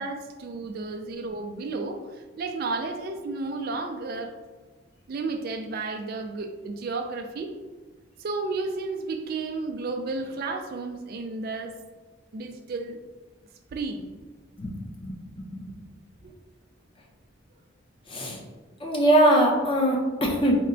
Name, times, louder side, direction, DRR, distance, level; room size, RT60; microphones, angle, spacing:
voice 1, 0.0-4.4 5.1-7.5 8.2-11.8 12.3-13.0 13.7-14.0 16.2-16.3, right 3 dB, 50° right, 4 dB, 0.3 m, -32 dB
voice 2, 14.6-15.7 18.1-18.4 18.8-20.6, right 1 dB, 25° left, -1 dB, 0.7 m, -22 dB
4.2 x 2.2 x 3.8 m, 1.4 s
head